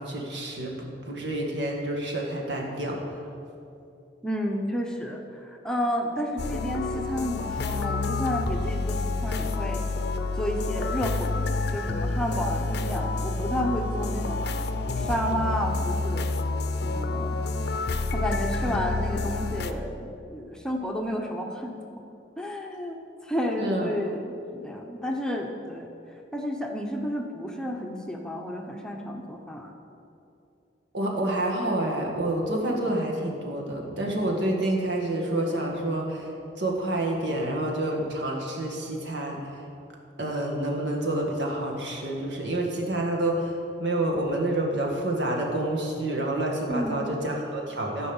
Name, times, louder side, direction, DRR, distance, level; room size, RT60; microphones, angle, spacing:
voice 1, 0.0-3.0 23.6-23.9 30.9-36.3 36.6-39.5 40.2-48.1, right 1 dB, 75° right, -1 dB, 1.9 m, -28 dB
voice 2, 4.2-9.8 10.4-11.4 11.7-14.4 15.0-16.3 16.8-17.3 18.1-22.0 22.4-23.0 23.2-25.9 26.3-29.7 46.7-47.2, equal, 5° left, 1 dB, 0.8 m, -31 dB
sound 1, 6.4-19.7, left 3 dB, 65° left, 0.6 m, -28 dB
14.0 x 5.4 x 7.2 m, 2.7 s
head